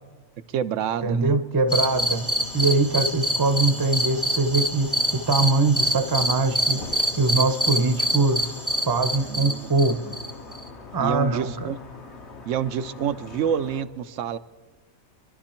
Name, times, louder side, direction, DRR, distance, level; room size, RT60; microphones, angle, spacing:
voice 1, 0.5-1.4 6.7-6.8 9.3-9.7 10.1-10.2 11.0-11.8 12.4-14.4, right 9 dB, 75° right, 14 dB, 1.0 m, -28 dB
voice 2, 1.0-2.2 2.5-6.8 7.2-8.5 8.9-10.0 10.9-11.7, right 3 dB, 20° right, 8 dB, 0.7 m, -22 dB
sound 1, 1.7-13.8, left 3 dB, 60° left, 1.7 m, -42 dB
sound 2, 1.7-10.7, equal, 10° left, 0.9 m, -26 dB
26.0 x 12.0 x 4.4 m, 1.4 s
omnidirectional pair, 1.3 m